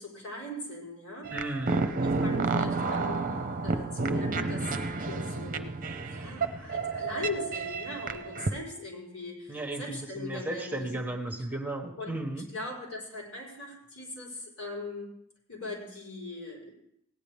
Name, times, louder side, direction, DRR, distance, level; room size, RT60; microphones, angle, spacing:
voice 1, 0.0-1.3 1.7-3.3 3.6-5.7 6.0-10.9 12.0-12.1 12.5-15.1 15.5-16.7, left 2 dB, 90° left, -3 dB, 4.7 m, -40 dB
voice 2, 1.3-1.9 9.5-12.4, right 2 dB, 10° right, 2 dB, 1.1 m, -35 dB
sound 1, 1.3-8.5, right 3 dB, 40° right, 0.7 m, -30 dB
16.5 x 9.9 x 3.5 m, 0.73 s
head